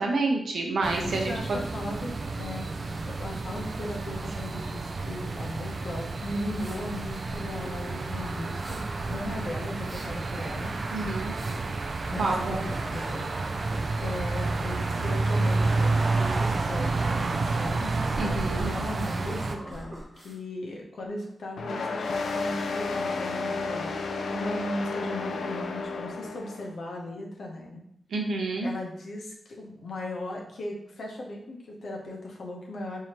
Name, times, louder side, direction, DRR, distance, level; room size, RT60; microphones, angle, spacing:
voice 1, 0.0-1.6 10.9-11.3 12.2-12.7 18.2-18.7 28.1-28.7, right 3 dB, 80° right, 1 dB, 0.7 m, -28 dB
sound 1, 0.8-19.6, right 3 dB, 45° right, 0.3 m, -30 dB
voice 2, 1.0-2.7 3.0-8.8 9.1-10.7 12.1-12.6 12.9-17.9 18.6-27.8 28.6-33.0, left 1 dB, 70° left, -1 dB, 0.8 m, -37 dB
sound 2, 6.5-6.8 7.3-7.9 8.5-11.7 12.1-13.2 13.6-14.2 15.5-15.8 16.3-16.5 16.8-17.0 17.6-19.2 19.5-20.4, right 1 dB, 25° right, 0.8 m, -42 dB
sound 3, 21.6-26.7, left 4 dB, 90° left, 0.4 m, -32 dB
4.7 x 2.7 x 2.9 m, 0.72 s
wide cardioid pair, 160°, 0 cm